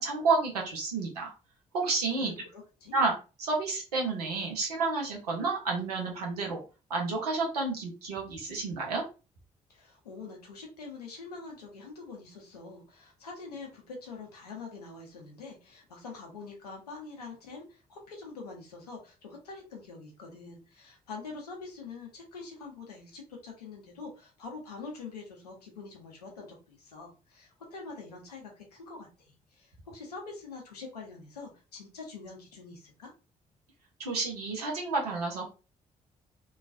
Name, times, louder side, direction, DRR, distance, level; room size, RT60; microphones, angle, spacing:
voice 1, 0.0-1.3 1.7-2.3 2.9-3.1 3.4-6.6 6.9-9.0 34.0-35.4, right 3 dB, 85° right, 0 dB, 0.8 m, -30 dB
voice 2, 2.1-3.0 9.7-33.1, left 4 dB, 85° left, 0 dB, 0.7 m, -45 dB
3.0 x 2.3 x 2.5 m, 0.32 s
figure-of-eight pair, 40°, 20 cm